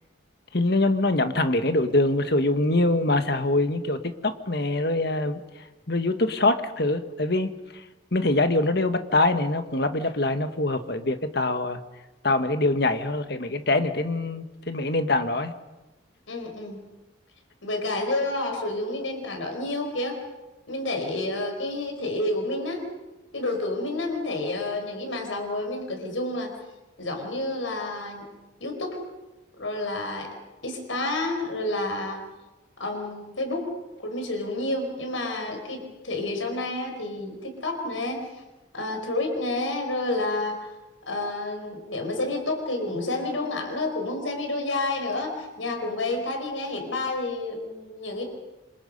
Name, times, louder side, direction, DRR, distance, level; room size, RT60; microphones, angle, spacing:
voice 1, 0.5-5.4 5.9-7.5 8.1-11.8 12.2-15.5, left 2 dB, 55° left, 8 dB, 1.6 m, -24 dB
voice 2, 16.3-16.8 17.6-20.2 20.7-22.8 23.3-26.5 27.0-28.3 28.6-29.0 29.6-30.3 30.6-32.2 32.8-33.7 34.0-38.2 38.7-40.7 41.1-48.2, left 2 dB, 85° left, 4 dB, 5.1 m, -29 dB
27.5 x 25.5 x 5.5 m, 1.1 s
head